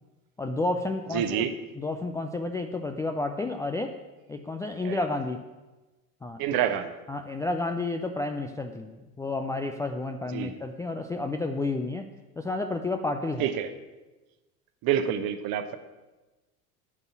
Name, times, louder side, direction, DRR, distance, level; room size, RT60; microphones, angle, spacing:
voice 1, 0.4-1.5 1.8-3.9 4.3-5.4 6.2-6.6 7.1-12.1 12.4-13.5, left 2 dB, 10° left, 4 dB, 0.3 m, -31 dB
voice 2, 1.1-1.5 4.8-5.0 6.4-6.9 10.3-10.5 13.4-13.7 14.8-15.8, right 10 dB, 45° right, 10 dB, 1.1 m, -27 dB
9.6 x 5.4 x 8.1 m, 1.2 s
figure-of-eight pair, 70°, 47 cm